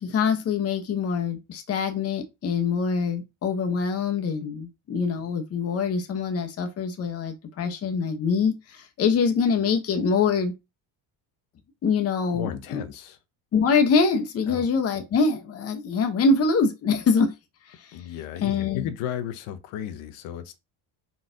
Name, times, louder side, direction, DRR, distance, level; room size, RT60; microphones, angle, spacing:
voice 1, 0.0-10.5 11.8-12.8 13.5-17.3 17.7-18.0 18.4-18.9, left 5 dB, 30° left, 0.7 m, -24 dB
voice 2, 12.3-13.2 14.5-14.7 17.9-20.6, left 10 dB, 85° left, 0.9 m, -34 dB
4.1 x 4.0 x 2.5 m
cardioid pair, 160°, 49 cm